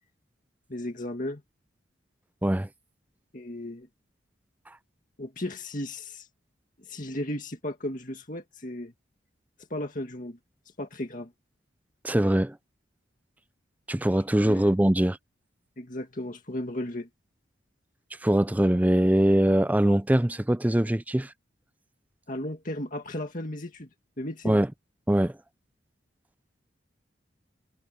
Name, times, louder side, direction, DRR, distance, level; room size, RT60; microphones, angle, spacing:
voice 1, 0.7-1.4 3.3-3.9 5.2-6.3 6.8-8.9 9.7-10.4 10.8-11.3 14.4-14.7 15.8-17.1 22.3-23.9 24.2-24.6, left 1 dB, 45° left, 2.1 m, -35 dB
voice 2, 12.0-12.6 13.9-15.2 18.2-21.3 24.4-24.7 25.1-25.3, right 1 dB, 10° right, 0.4 m, -22 dB
head